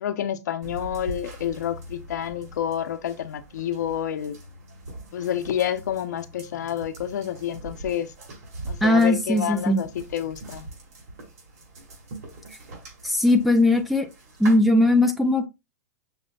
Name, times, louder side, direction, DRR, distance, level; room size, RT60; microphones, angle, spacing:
voice 1, 0.0-4.4 5.1-8.1 8.6-10.7, left 10 dB, 85° left, 0.7 m, -29 dB
sound 1, 0.6-14.6, right 2 dB, 60° right, 2.6 m, -42 dB
voice 2, 8.8-9.8 13.0-14.1 14.4-15.5, left 1 dB, ahead, 0.4 m, -19 dB
6.0 x 2.1 x 3.8 m
supercardioid pair, 165°, 9 cm